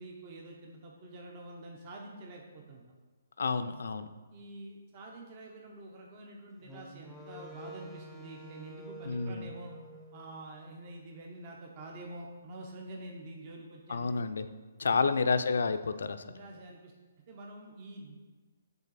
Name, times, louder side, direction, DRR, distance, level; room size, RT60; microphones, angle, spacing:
voice 1, 0.0-2.8 3.7-3.8 4.3-9.7 10.1-14.2 14.9-15.1 16.3-16.9 17.3-18.2, right 2 dB, 35° right, 0 dB, 0.8 m, -47 dB
voice 2, 3.4-4.1 9.0-9.5 13.9-14.5 14.8-16.3, left 4 dB, 75° left, 11 dB, 0.4 m, -30 dB
Wind instrument woodwind instrument, 6.6-10.9, right 1 dB, ahead, 0.7 m, -49 dB
7.0 x 3.9 x 4.1 m, 1.3 s
hypercardioid pair, 150°, 0 cm